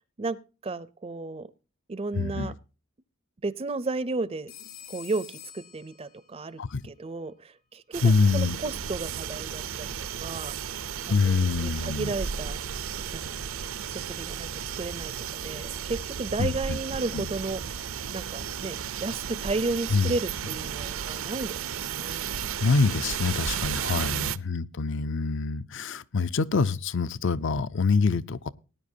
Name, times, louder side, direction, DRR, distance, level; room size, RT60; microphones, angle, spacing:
voice 1, 0.6-1.5 1.9-2.5 3.4-4.5 4.9-10.5 11.2-13.4 13.9-14.5 14.8-17.7 18.1-22.3 23.9-24.3, right 3 dB, 25° right, 0.5 m, -33 dB
voice 2, 2.1-2.5 6.6-6.8 8.0-8.6 11.1-12.1 16.4-16.8 17.1-17.3 19.9-20.2 22.6-28.5, left 4 dB, 60° left, 0.5 m, -25 dB
Telephone, 4.5-6.5, left 10 dB, 75° left, 3.8 m, -47 dB
sound 1, 7.9-24.4, right 8 dB, 70° right, 0.6 m, -34 dB
18.5 x 10.0 x 2.7 m
head